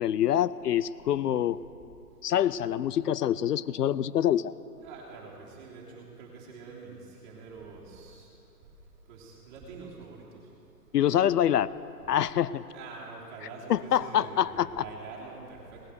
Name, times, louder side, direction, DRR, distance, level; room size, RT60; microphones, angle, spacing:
voice 1, 0.0-1.6 2.2-4.5 10.9-11.7 12.1-12.6 13.7-14.8, left 10 dB, 75° left, 18 dB, 0.5 m, -25 dB
voice 2, 4.8-8.3 9.1-10.4 12.7-15.9, right 4 dB, 30° right, -4 dB, 3.2 m, -45 dB
18.5 x 8.3 x 6.4 m, 2.9 s
hypercardioid pair, 150°, 49 cm